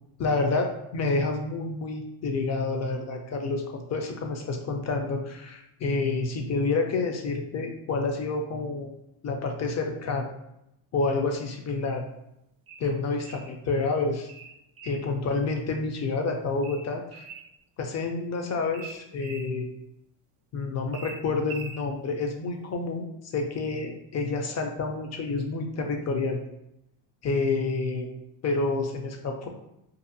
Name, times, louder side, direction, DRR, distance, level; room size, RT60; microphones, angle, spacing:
voice 1, 0.2-8.9 9.2-10.3 10.9-12.0 12.8-14.3 14.8-17.3 17.8-19.7 20.5-23.1 23.3-26.4 27.2-28.1 28.4-29.5, left 3 dB, 35° left, 4 dB, 0.4 m, -28 dB
sound 1, 12.7-13.5 14.3-15.1 16.6-17.5 18.7-19.5 20.9-21.8, right 5 dB, 30° right, 0.4 m, -43 dB
2.6 x 2.3 x 2.6 m, 0.82 s
cardioid pair, 110°, 48 cm